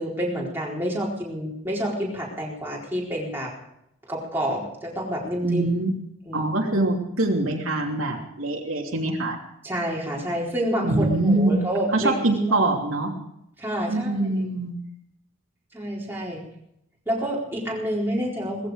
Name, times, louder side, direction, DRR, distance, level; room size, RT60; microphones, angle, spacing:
voice 1, 0.0-3.5 4.1-5.7 6.3-6.4 9.6-12.1 12.5-12.7 13.6-14.4 15.7-16.4 17.1-18.7, equal, 10° right, -4 dB, 4.3 m, -28 dB
voice 2, 5.4-5.9 6.3-9.4 10.8-11.6 11.9-13.1 13.9-14.7, right 2 dB, 75° right, 0 dB, 3.0 m, -24 dB
19.0 x 15.0 x 5.0 m, 0.78 s
head